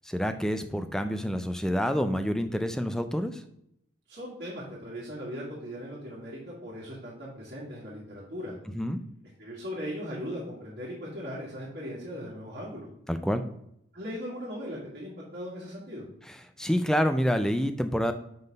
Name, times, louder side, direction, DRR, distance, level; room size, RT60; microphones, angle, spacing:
voice 1, 0.0-3.4 8.7-9.0 13.1-13.4 16.3-18.1, equal, 5° left, 8 dB, 0.3 m, -28 dB
voice 2, 4.1-8.6 9.4-12.9 13.9-16.1, equal, 50° right, -7 dB, 1.8 m, -38 dB
5.4 x 4.0 x 5.1 m, 0.74 s
head